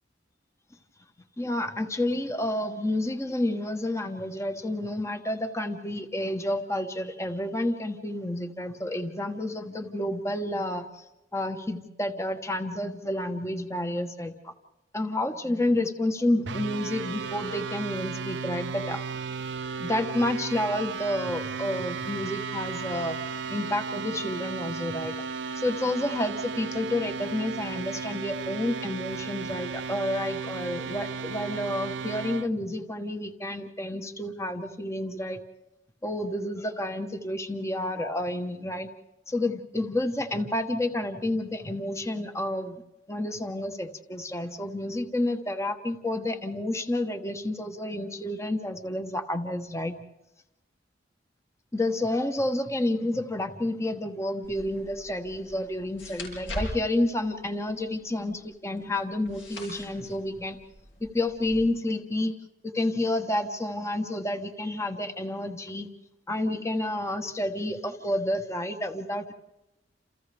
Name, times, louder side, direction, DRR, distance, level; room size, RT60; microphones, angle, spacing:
voice 1, 1.4-11.0 11.3-14.5 14.9-19.0 19.8-23.2 23.5-25.1 25.6-35.4 36.0-38.9 39.3-42.8 43.1-50.0 51.7-60.6 61.0-62.3 62.7-65.9 66.3-69.3, left 1 dB, 15° left, 6 dB, 1.1 m, -30 dB
sound 1, 16.5-32.5, right 5 dB, 70° right, 0.7 m, -35 dB
sound 2, 54.4-61.6, left 1 dB, 85° left, 7.6 m, -42 dB
29.0 x 28.5 x 3.5 m, 0.96 s
head